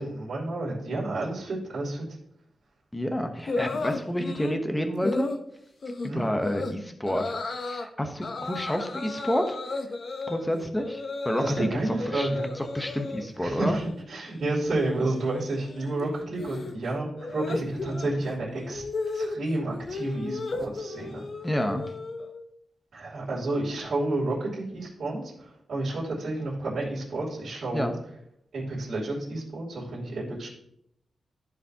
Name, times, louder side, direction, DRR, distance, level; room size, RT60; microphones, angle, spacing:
voice 1, 0.0-2.0 6.1-6.2 11.4-12.5 13.4-18.8 19.1-21.2 22.9-27.9 28.5-30.5, right 2 dB, 60° right, -11 dB, 3.1 m, -30 dB
voice 2, 2.9-5.3 6.0-9.6 10.3-12.3 12.6-13.8 21.4-21.8 27.7-28.0, equal, 10° left, 6 dB, 0.9 m, -29 dB
sound 1, 3.5-4.6 5.0-5.4 5.8-6.1 6.4-6.7 7.1-7.9 8.2-11.7 12.0-13.3 13.6-14.0 14.3-22.4, left 3 dB, 45° left, 0.7 m, -35 dB
14.5 x 4.9 x 2.8 m, 0.74 s
wide cardioid pair, 145°, 0 cm